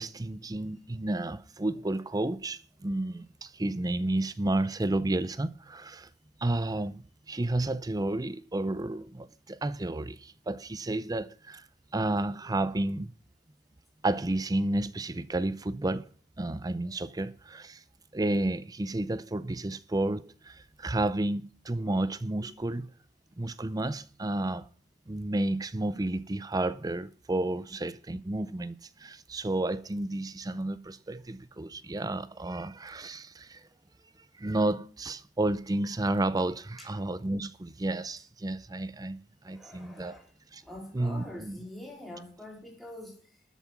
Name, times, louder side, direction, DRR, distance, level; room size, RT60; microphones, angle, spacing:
voice 1, 0.0-6.1 6.4-11.7 11.9-13.1 14.0-16.1 16.4-17.8 18.1-22.9 23.4-24.7 25.1-33.6 34.4-39.2 39.4-40.2 40.5-40.6 40.9-41.6, right 2 dB, 20° right, 0.5 m, -31 dB
voice 2, 39.4-43.4, left 1 dB, ahead, 3.9 m, -45 dB
13.0 x 8.2 x 5.9 m
head